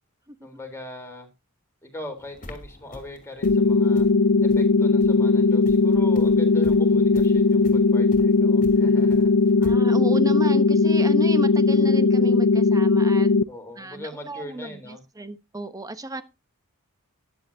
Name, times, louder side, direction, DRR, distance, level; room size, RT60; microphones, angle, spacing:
voice 1, 0.4-1.3 1.8-4.1 4.4-9.3 9.6-9.7 13.5-15.0, left 1 dB, 10° left, 3.6 m, -40 dB
sound 1, 2.2-9.7, left 1 dB, 40° left, 2.9 m, -46 dB
sound 2, 3.4-13.4, left 4 dB, 65° left, 0.6 m, -18 dB
voice 2, 9.6-13.3 13.8-16.2, right 1 dB, 15° right, 1.0 m, -33 dB
14.0 x 10.5 x 2.7 m
head